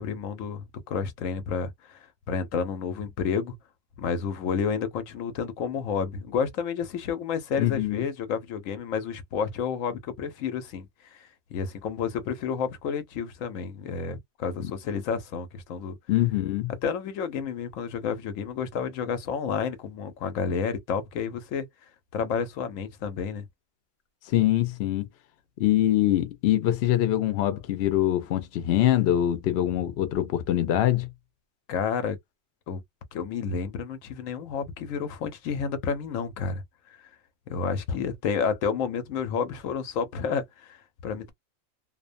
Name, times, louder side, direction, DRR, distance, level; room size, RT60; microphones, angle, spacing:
voice 1, 0.0-2.0 2.3-3.5 4.0-16.0 16.8-21.7 22.1-23.4 31.7-32.2 32.7-32.8 33.1-36.6 37.5-41.3, left 6 dB, 85° left, 1.0 m, -30 dB
voice 2, 7.6-8.1 14.6-14.7 16.1-16.7 24.3-25.1 25.6-31.1, left 13 dB, 65° left, 0.8 m, -24 dB
2.5 x 2.1 x 2.5 m
omnidirectional pair, 1.3 m